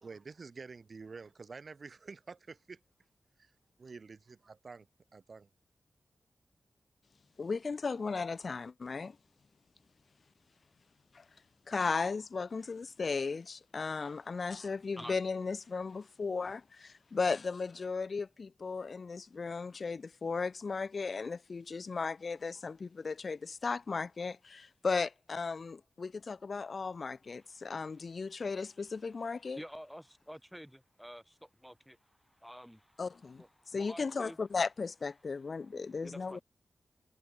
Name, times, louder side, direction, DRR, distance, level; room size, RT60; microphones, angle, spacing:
voice 1, 0.0-2.8 3.8-4.9 5.1-5.5, right 4 dB, 60° right, 0.9 m, -48 dB
voice 2, 7.4-9.2 11.1-11.2 11.7-29.6 33.0-36.4, left 4 dB, 60° left, 0.4 m, -36 dB
voice 3, 29.5-33.0 33.4-34.4 36.0-36.4, equal, ahead, 3.8 m, -49 dB
cardioid pair, 60°, 0 cm